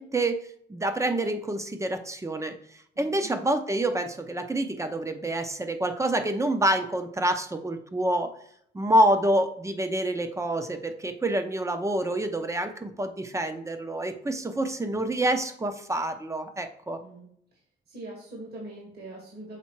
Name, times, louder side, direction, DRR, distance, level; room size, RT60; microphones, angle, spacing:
voice 1, 0.0-2.6 3.0-8.3 8.7-17.0, right 1 dB, 15° right, 8 dB, 0.7 m, -27 dB
voice 2, 2.9-3.3 17.0-17.3 17.9-19.6, right 2 dB, 55° right, -1 dB, 1.9 m, -42 dB
5.9 x 3.5 x 4.6 m, 0.67 s
cardioid pair, 90°, 20 cm